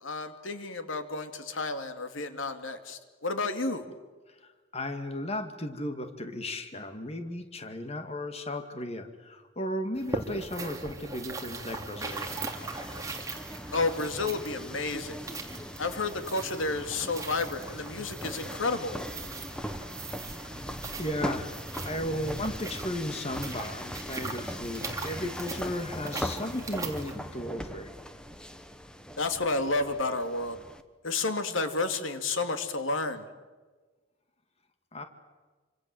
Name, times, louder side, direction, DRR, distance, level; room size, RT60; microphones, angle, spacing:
voice 1, 0.0-3.8 13.7-15.2 15.8-19.0 29.2-30.6 31.0-33.2, left 3 dB, 85° left, 8 dB, 2.5 m, -31 dB
voice 2, 4.3-12.4 21.0-21.5 21.8-27.9 34.9-35.0, left 1 dB, 30° left, 7 dB, 2.0 m, -35 dB
sound 1, 10.0-27.1, right 3 dB, 15° right, 3.1 m, -40 dB
sound 2, 12.0-30.8, equal, 5° left, 1.3 m, -40 dB
28.5 x 25.5 x 7.8 m, 1.3 s
head